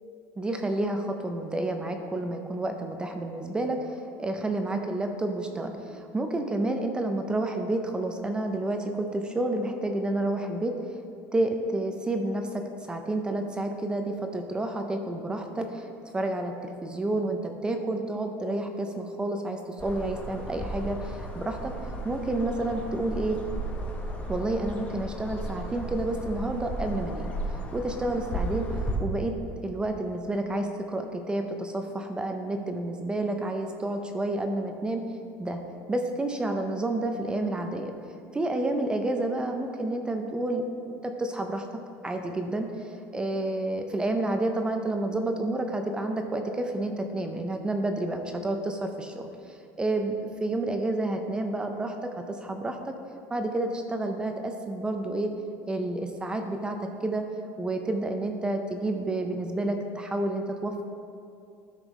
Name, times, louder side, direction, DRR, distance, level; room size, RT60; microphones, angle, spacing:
voice 1, 0.4-10.8 11.3-15.9 16.1-21.8 22.0-23.4 24.3-27.3 27.7-28.7 29.0-29.4 29.6-35.0 35.4-35.6 35.9-37.9 38.3-41.8 42.0-52.9 53.3-55.3 55.6-57.2 57.6-60.8, right 2 dB, 10° right, 5 dB, 0.5 m, -30 dB
sound 1, 19.8-29.0, right 1 dB, 20° left, 0.8 m, -34 dB
13.0 x 5.3 x 3.1 m, 2.5 s
cardioid pair, 150°, 7 cm